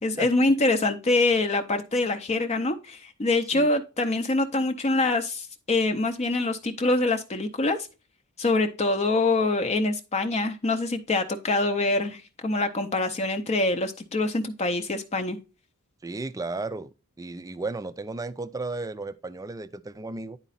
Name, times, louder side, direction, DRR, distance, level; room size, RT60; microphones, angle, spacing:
voice 1, 0.0-7.8 8.4-15.4, left 2 dB, 30° left, 0.6 m, -25 dB
voice 2, 16.0-20.4, right 3 dB, 15° right, 0.4 m, -34 dB
10.0 x 4.1 x 4.1 m
head